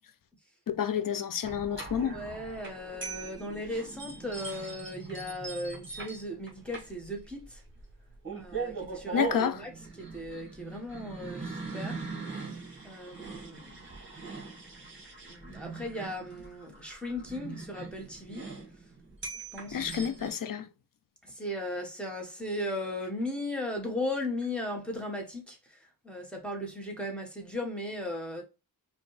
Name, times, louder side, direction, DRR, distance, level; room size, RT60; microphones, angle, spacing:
voice 1, 0.7-2.2 9.1-9.6 19.7-20.7, left 8 dB, 60° left, 0.5 m, -29 dB
sound 1, 1.4-20.3, right 4 dB, 30° right, 1.5 m, -41 dB
voice 2, 1.9-7.6 8.3-9.7 10.0-12.0 12.8-13.8 15.2-18.5 19.5-20.1 21.2-25.8 26.0-28.4, left 1 dB, 5° left, 1.2 m, -37 dB
5.1 x 2.3 x 3.1 m
wide cardioid pair, 115°, 37 cm